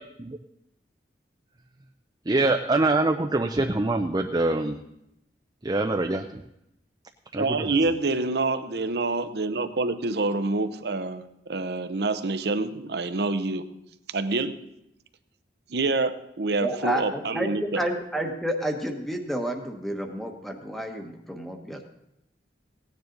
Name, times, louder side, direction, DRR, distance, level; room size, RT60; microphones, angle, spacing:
voice 1, 2.3-4.8 5.6-6.2 7.3-7.5, right 2 dB, 25° right, 4 dB, 0.5 m, -24 dB
voice 2, 7.4-13.6 14.1-14.5 15.7-17.8, right 3 dB, 65° right, 11 dB, 0.7 m, -27 dB
voice 3, 16.6-21.8, right 1 dB, ahead, 3 dB, 1.2 m, -30 dB
17.0 x 9.6 x 3.9 m, 0.82 s
head